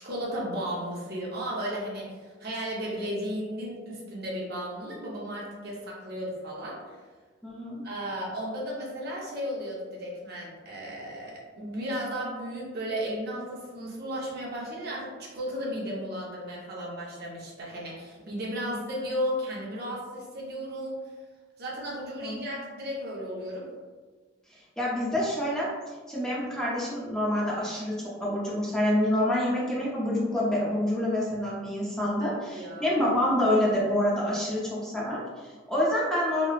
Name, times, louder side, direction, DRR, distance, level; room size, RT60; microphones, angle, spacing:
voice 1, 0.0-7.0 7.8-21.0 21.6-23.7 32.2-32.9, equal, 55° right, -4 dB, 0.7 m, -34 dB
voice 2, 7.4-7.8 18.6-18.8 22.2-22.4 24.8-25.7 26.1-36.5, left 1 dB, 5° left, -7 dB, 0.5 m, -27 dB
3.0 x 2.0 x 2.3 m, 1.4 s
head